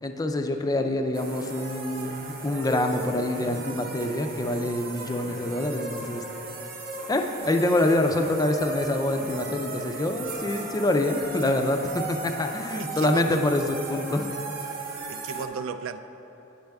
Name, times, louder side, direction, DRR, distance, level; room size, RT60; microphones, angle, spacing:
voice 1, 0.0-6.2 7.1-14.3, left 1 dB, 20° left, 5 dB, 0.4 m, -26 dB
sound 1, 1.1-15.5, right 3 dB, 45° right, 0.7 m, -36 dB
voice 2, 12.8-13.5 15.1-16.0, right 6 dB, 70° right, 10 dB, 0.3 m, -35 dB
9.5 x 6.5 x 3.5 m, 3.0 s
head